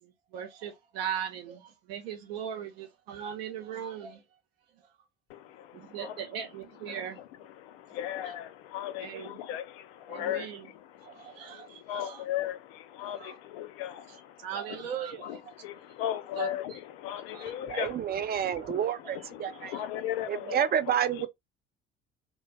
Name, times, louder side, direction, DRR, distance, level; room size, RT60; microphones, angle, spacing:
voice 1, 0.0-4.2 4.7-4.9 5.7-7.2 8.2-8.3 9.0-9.4 10.1-10.7 11.0-12.2 13.2-13.4 14.1-15.5 16.4-16.8 17.3-17.9 18.6-18.7 19.0-19.8 20.4-20.7, right 9 dB, 80° right, 0.7 m, -39 dB
voice 2, 5.3-6.2 6.8-7.0 7.6-14.5 15.2-21.3, left 12 dB, 75° left, 0.5 m, -37 dB
voice 3, 17.7-19.7 20.3-21.3, right 9 dB, 35° right, 0.4 m, -29 dB
2.5 x 2.2 x 3.1 m
hypercardioid pair, 60°, 30 cm